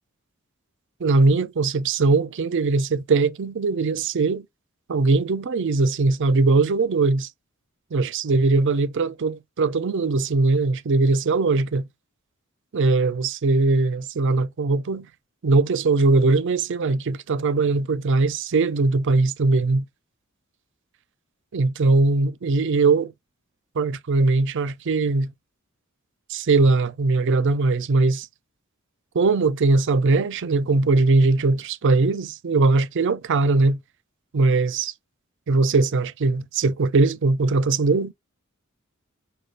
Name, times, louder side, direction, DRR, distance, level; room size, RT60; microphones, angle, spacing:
voice 1, 1.0-4.5 4.9-7.3 7.9-11.8 12.7-15.1 15.4-19.8 21.5-23.1 23.8-25.3 26.3-28.3 29.1-33.8 34.3-34.9 35.5-38.1, right 3 dB, 60° right, 0.5 m, -20 dB
6.4 x 2.3 x 2.4 m
head